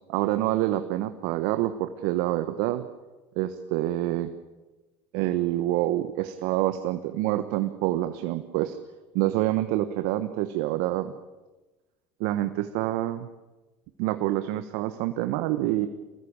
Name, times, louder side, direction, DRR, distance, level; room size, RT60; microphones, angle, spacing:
voice 1, 0.1-2.8 3.4-4.3 5.1-8.8 9.1-11.1 12.2-13.3 14.0-15.9, right 15 dB, 75° right, 9 dB, 1.3 m, -27 dB
24.5 x 19.5 x 8.9 m, 1.2 s
hypercardioid pair, 75°, 16 cm